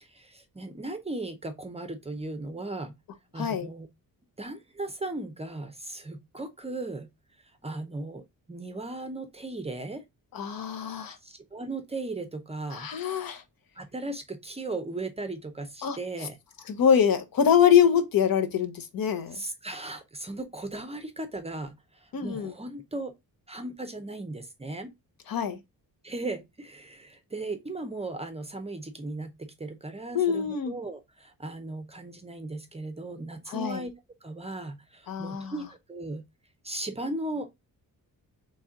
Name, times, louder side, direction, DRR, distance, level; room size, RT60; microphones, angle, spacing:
voice 1, 0.0-3.0 3.3-3.9 4.4-7.1 7.6-8.2 8.5-10.0 11.0-12.9 13.8-16.3 19.3-23.1 23.5-24.9 26.0-33.9 34.2-36.2 36.6-37.6, right 2 dB, 15° right, 0.5 m, -37 dB
voice 2, 3.4-3.7 10.3-11.2 12.7-13.4 15.8-16.3 16.7-19.4 22.1-22.5 25.3-25.6 30.1-30.7 33.5-33.8 35.1-35.5, left 8 dB, 70° left, 1.0 m, -24 dB
4.3 x 3.2 x 3.5 m
wide cardioid pair, 180°, 36 cm